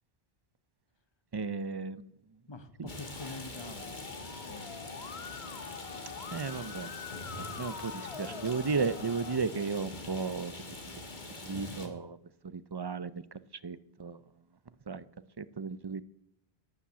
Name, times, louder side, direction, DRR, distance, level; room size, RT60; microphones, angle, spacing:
voice 1, 1.3-2.0 6.3-6.9 7.4-10.8 11.4-12.2 12.5-13.2 13.6-14.2 14.9-15.0 15.4-16.0, right 5 dB, 35° right, 15 dB, 0.4 m, -34 dB
voice 2, 2.5-5.1 8.1-8.6, left 3 dB, 25° left, 9 dB, 1.1 m, -47 dB
Rain, 2.9-11.9, left 2 dB, 50° left, 2.0 m, -44 dB
Musical instrument, 3.8-9.4, left 7 dB, 75° left, 1.2 m, -45 dB
12.0 x 10.0 x 8.3 m, 0.77 s
omnidirectional pair, 1.1 m